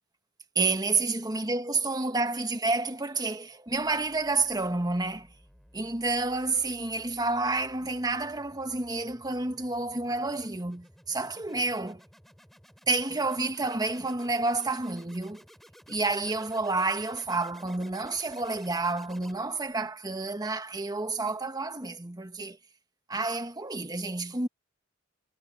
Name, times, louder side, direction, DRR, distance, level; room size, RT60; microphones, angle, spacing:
voice 1, 0.5-5.3 5.7-12.0 12.9-15.4 15.9-22.6 23.1-24.5, right 3 dB, 20° right, 1.5 m, -29 dB
sound 1, 3.7-19.8, equal, ahead, 7.2 m, -56 dB
head